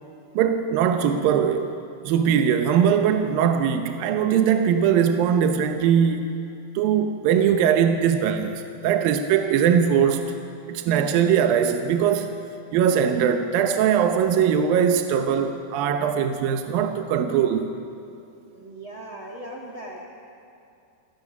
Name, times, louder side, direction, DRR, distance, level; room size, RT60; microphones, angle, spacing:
voice 1, 0.4-1.8 2.0-6.4 6.8-10.3 10.7-12.3 12.7-17.7, right 8 dB, 75° right, 2.4 m, -21 dB
voice 2, 18.5-20.0, right 1 dB, 50° right, 1.6 m, -38 dB
29.0 x 18.5 x 6.0 m
omnidirectional pair, 4.7 m